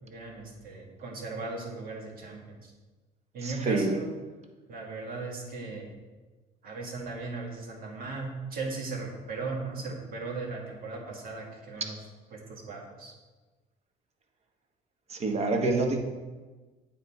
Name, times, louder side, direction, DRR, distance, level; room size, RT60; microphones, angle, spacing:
voice 1, 0.0-2.7 3.3-4.2 4.7-5.9 6.6-12.0 12.3-13.1, right 3 dB, 60° right, 0 dB, 1.8 m, -37 dB
voice 2, 3.4-4.0 15.1-16.0, right 3 dB, 40° right, 3 dB, 1.1 m, -27 dB
8.9 x 4.1 x 4.3 m, 1.3 s
cardioid pair, 110°, 17 cm